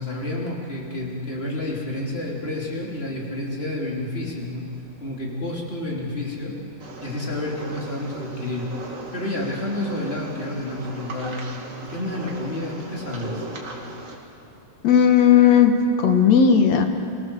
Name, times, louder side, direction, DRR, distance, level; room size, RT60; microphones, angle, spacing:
voice 1, 0.0-4.6 5.0-6.5 7.0-8.7 9.1-11.4 11.8-13.4, left 1 dB, 20° left, -2 dB, 3.1 m, -29 dB
sound 1, 6.8-14.2, right 2 dB, 30° right, 2.1 m, -37 dB
voice 2, 14.8-16.9, left 7 dB, 60° left, 5 dB, 2.2 m, -15 dB
24.5 x 18.0 x 6.9 m, 2.5 s
omnidirectional pair, 3.7 m